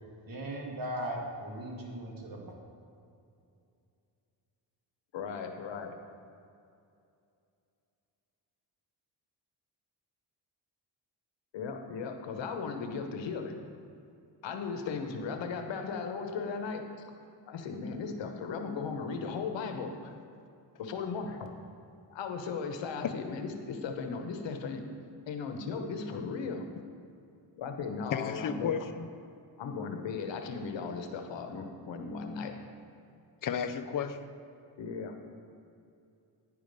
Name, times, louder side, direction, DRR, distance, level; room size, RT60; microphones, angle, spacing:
voice 1, 0.2-2.5, right 1 dB, 50° right, 0 dB, 1.7 m, -38 dB
voice 2, 5.1-5.9 11.5-13.6 14.4-17.1 17.5-20.1 20.8-21.5 22.1-24.8 25.3-26.7 27.6-28.7 29.6-32.5 34.8-35.2, left 5 dB, 75° left, 5 dB, 1.0 m, -37 dB
voice 3, 28.1-29.1 33.4-34.3, left 7 dB, 50° left, 9 dB, 0.6 m, -33 dB
9.8 x 5.0 x 5.3 m, 2.6 s
cardioid pair, 100°, 44 cm